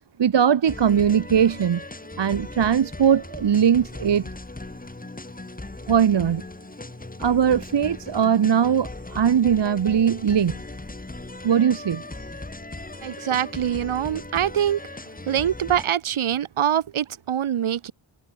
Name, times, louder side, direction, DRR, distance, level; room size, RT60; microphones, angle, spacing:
voice 1, 0.2-1.8 2.2-4.3 5.9-6.4 7.2-10.6 11.4-12.0, right 8 dB, 60° right, 0.9 m, -20 dB
sound 1, 0.7-15.9, left 2 dB, 20° left, 1.6 m, -38 dB
voice 2, 13.0-14.8 15.3-17.9, right 10 dB, 90° right, 0.9 m, -24 dB
wide cardioid pair, 70°, 48 cm